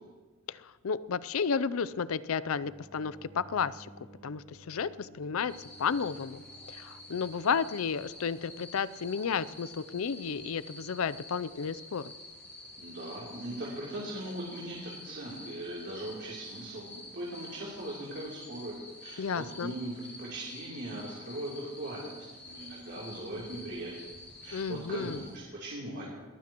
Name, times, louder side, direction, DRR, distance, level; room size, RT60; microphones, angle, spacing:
voice 1, 0.5-3.9 4.2-5.5 5.8-6.4 6.7-12.1 19.2-19.7 24.5-25.2, left 6 dB, 70° left, 17 dB, 0.5 m, -32 dB
sound 1, 2.4-7.8, right 1 dB, 75° right, 5.8 m, -55 dB
sound 2, 5.5-25.4, left 2 dB, 10° left, 4.7 m, -49 dB
voice 2, 12.8-18.7 19.0-24.0 24.4-26.1, right 1 dB, 55° right, -5 dB, 3.2 m, -39 dB
21.5 x 15.5 x 3.0 m, 1.3 s
head